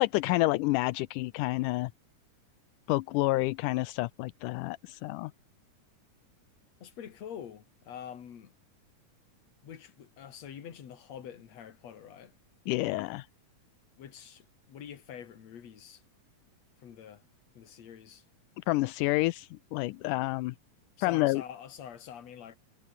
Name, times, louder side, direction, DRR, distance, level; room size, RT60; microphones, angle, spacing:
voice 1, 0.0-1.9 2.9-5.3 12.7-13.3 18.7-20.5 21.0-21.4, left 20 dB, 80° left, 2.1 m, -29 dB
voice 2, 6.8-8.5 9.6-12.3 14.0-16.0 16.8-17.2 17.5-18.2 21.0-22.6, left 9 dB, 55° left, 3.2 m, -46 dB
omnidirectional pair, 3.8 m